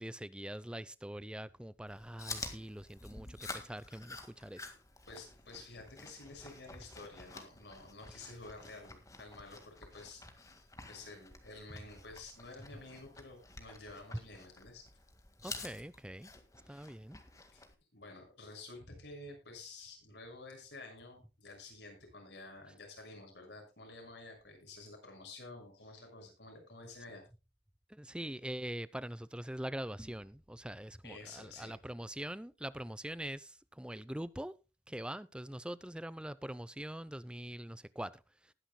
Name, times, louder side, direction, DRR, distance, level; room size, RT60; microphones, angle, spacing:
voice 1, 0.0-4.7 15.4-16.3 16.7-17.2 27.9-34.5 34.9-38.1, right 1 dB, 5° right, 0.5 m, -43 dB
Chewing mastication, 1.9-17.7, left 3 dB, 20° left, 1.8 m, -50 dB
voice 2, 5.1-14.9 17.5-17.6 17.9-27.2 31.0-31.8, left 2 dB, 80° left, 6.2 m, -51 dB
20.0 x 10.0 x 2.2 m
head